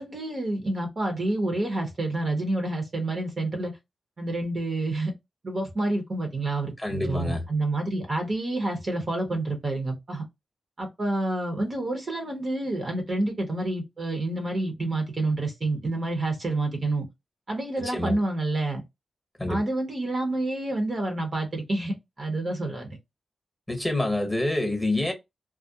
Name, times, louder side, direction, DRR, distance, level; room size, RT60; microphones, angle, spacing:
voice 1, 0.0-3.8 4.2-5.1 5.4-10.2 10.8-17.1 17.5-18.8 19.5-23.0, right 2 dB, 40° right, 0.8 m, -28 dB
voice 2, 6.8-7.4 17.8-18.2 19.4-19.6 23.7-25.1, left 1 dB, 10° left, 1.0 m, -27 dB
2.3 x 2.0 x 2.7 m
wide cardioid pair, 100°, 0 cm